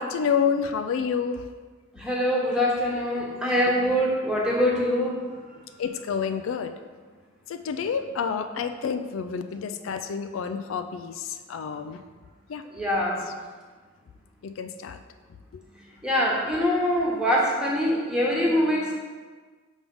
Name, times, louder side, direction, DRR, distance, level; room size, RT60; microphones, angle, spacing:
voice 1, 0.0-1.5 5.8-6.7 7.5-12.0 12.5-12.6 14.4-15.0, left 6 dB, 75° left, 8 dB, 0.3 m, -29 dB
voice 2, 1.9-5.3 12.7-13.2 16.0-18.9, equal, 5° right, -4 dB, 1.1 m, -24 dB
6.1 x 3.5 x 5.3 m, 1.4 s
head